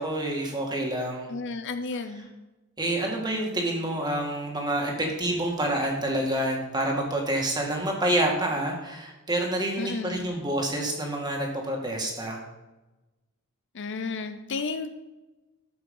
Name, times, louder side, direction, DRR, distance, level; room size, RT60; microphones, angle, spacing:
voice 1, 0.0-1.3 2.8-12.4, right 1 dB, 20° right, 0 dB, 2.2 m, -28 dB
voice 2, 1.3-2.3 9.8-10.3 13.7-14.9, left 4 dB, 55° left, 9 dB, 0.7 m, -32 dB
13.0 x 5.7 x 5.5 m, 1.1 s
head